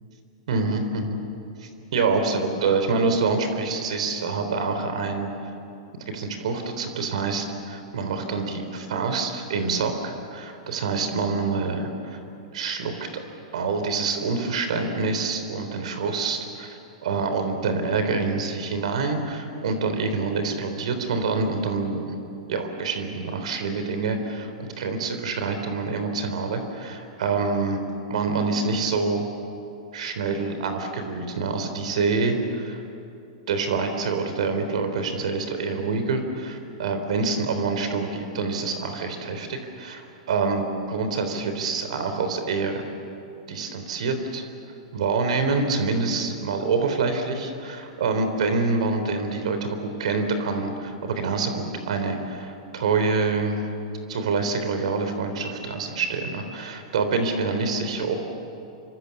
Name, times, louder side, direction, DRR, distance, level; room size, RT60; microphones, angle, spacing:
voice 1, 0.5-1.2 1.6-5.3 6.1-12.2 12.5-13.2 13.5-16.7 17.0-22.1 22.5-27.8 28.1-29.2 29.9-32.8 33.5-42.8 43.5-44.4 44.9-53.7 54.1-58.2, right 4 dB, 70° right, 7 dB, 3.6 m, -26 dB
27.5 x 25.0 x 7.2 m, 2.7 s
hypercardioid pair, 120°, 4 cm